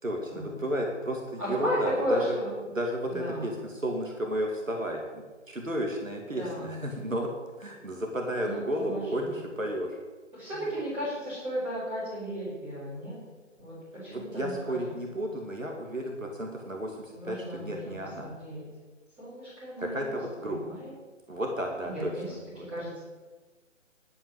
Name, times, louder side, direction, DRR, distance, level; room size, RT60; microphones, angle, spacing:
voice 1, 0.0-2.4 2.7-7.3 7.6-10.0 10.5-10.6 13.9-18.3 19.8-20.8 21.3-22.7, equal, 90° right, 1 dB, 2.4 m, -33 dB
voice 2, 1.4-2.5 3.1-3.5 6.4-6.7 8.4-9.2 10.3-13.2 13.6-14.8 17.2-17.9 18.2-18.6 19.2-20.1 20.4-20.9 21.8-22.3 22.7-23.0, equal, 10° right, -11 dB, 5.1 m, -34 dB
11.5 x 8.7 x 8.1 m, 1.3 s
figure-of-eight pair, 145°, 38 cm